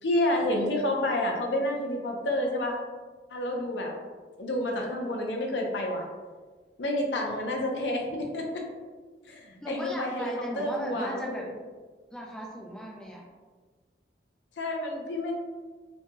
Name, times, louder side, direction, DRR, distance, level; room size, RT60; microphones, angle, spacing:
voice 1, 0.0-2.7 3.3-3.9 4.4-6.1 6.8-8.6 9.3-11.5 14.6-15.3, left 1 dB, 85° left, 1 dB, 0.5 m, -29 dB
voice 2, 9.6-11.4 12.1-13.2, equal, 5° left, -3 dB, 0.3 m, -37 dB
3.0 x 2.2 x 2.8 m, 1.4 s
head